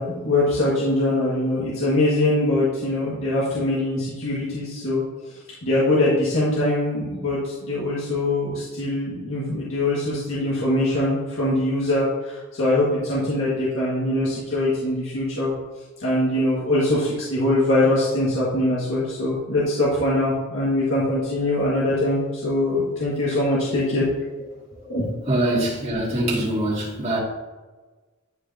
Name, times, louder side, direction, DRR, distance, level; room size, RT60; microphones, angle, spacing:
voice 1, 0.0-5.0 5.6-15.5 16.0-24.0 24.9-25.1, left 1 dB, 85° left, -8 dB, 1.9 m, -22 dB
voice 2, 25.3-27.2, right 1 dB, 30° right, -7 dB, 2.4 m, -23 dB
11.0 x 4.9 x 2.8 m, 1.3 s
head